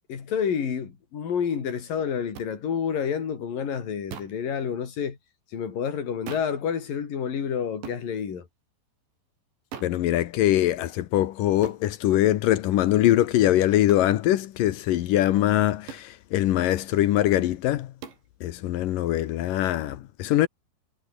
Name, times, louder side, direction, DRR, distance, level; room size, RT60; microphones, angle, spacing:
voice 1, 0.1-5.2 5.5-8.5, left 7 dB, 55° left, 5.1 m, -29 dB
sound 1, 2.4-2.5 4.1-4.4 6.3-6.6 7.8-8.1 9.7-10.0 11.6-11.9 13.9-14.1 15.9-16.1 18.0-18.3, right 8 dB, 85° right, 5.9 m, -40 dB
voice 2, 9.8-17.9 18.4-20.5, left 13 dB, 70° left, 2.2 m, -22 dB
omnidirectional pair, 5.0 m